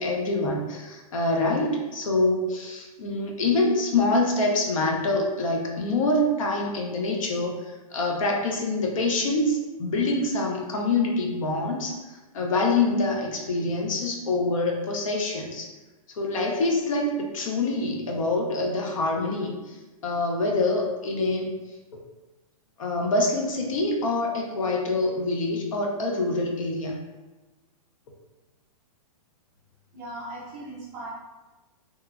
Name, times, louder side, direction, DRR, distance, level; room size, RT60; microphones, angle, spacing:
voice 1, 0.0-15.7 16.1-19.8 20.0-21.6 22.8-27.0, left 2 dB, 65° left, 1 dB, 0.6 m, -25 dB
voice 2, 29.9-31.1, right 1 dB, 15° right, -8 dB, 0.4 m, -38 dB
2.9 x 2.2 x 2.3 m, 1.2 s
hypercardioid pair, 175°, 19 cm